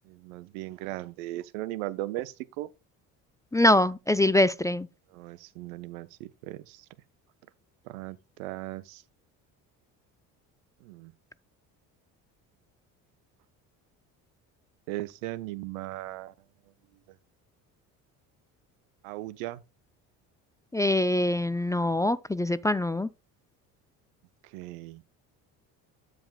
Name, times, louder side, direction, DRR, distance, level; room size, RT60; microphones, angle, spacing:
voice 1, 0.1-2.7 5.1-6.9 7.9-9.0 10.8-11.1 14.9-16.3 19.0-19.6 24.5-25.0, right 17 dB, 90° right, 0.7 m, -37 dB
voice 2, 3.5-4.9 20.7-23.1, left 1 dB, 10° left, 0.3 m, -24 dB
13.0 x 5.1 x 2.2 m
supercardioid pair, 75°, 39 cm